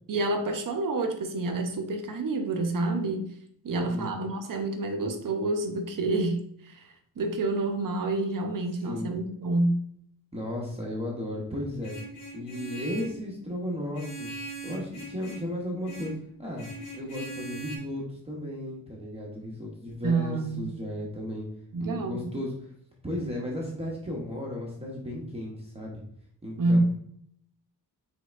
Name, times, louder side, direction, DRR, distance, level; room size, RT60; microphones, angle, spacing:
voice 1, 0.1-3.3 3.6-9.8 20.0-20.7 21.7-22.3 26.6-26.8, right 2 dB, 55° right, 5 dB, 0.7 m, -28 dB
voice 2, 3.7-4.1 8.9-9.1 10.3-12.0 12.3-14.3 14.6-16.1 16.4-16.7 16.9-21.5 21.8-22.7 23.0-26.0 26.4-26.8, left 1 dB, 15° right, -4 dB, 0.7 m, -35 dB
Vehicle horn car horn honking, 11.8-13.2 13.9-15.5 15.8-16.2 16.6-17.8, right 2 dB, 75° left, 1.8 m, -40 dB
5.2 x 3.4 x 2.4 m, 0.67 s
wide cardioid pair, 175°, 40 cm